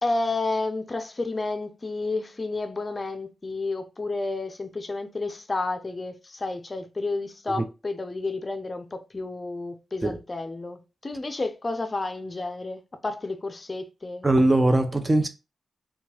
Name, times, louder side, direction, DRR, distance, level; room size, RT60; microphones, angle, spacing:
voice 1, 0.0-14.3, left 3 dB, 35° left, 0.4 m, -31 dB
voice 2, 14.2-15.3, right 2 dB, 25° right, 0.4 m, -20 dB
2.8 x 2.2 x 2.8 m
cardioid pair, 50°, 0 cm